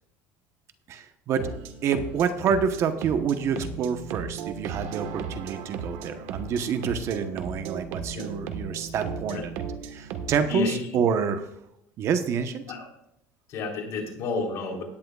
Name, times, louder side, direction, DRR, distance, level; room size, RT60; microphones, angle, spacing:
voice 1, 0.9-1.5 1.8-9.6 9.9-11.4 12.0-12.6, right 6 dB, 50° right, 8 dB, 1.0 m, -27 dB
sound 1, 1.4-10.3, right 6 dB, 75° right, 1.4 m, -36 dB
voice 2, 10.4-11.0 12.6-12.9 13.5-14.8, left 3 dB, 55° left, 1 dB, 3.7 m, -31 dB
17.0 x 10.5 x 2.4 m, 0.79 s
cardioid pair, 120°, 6 cm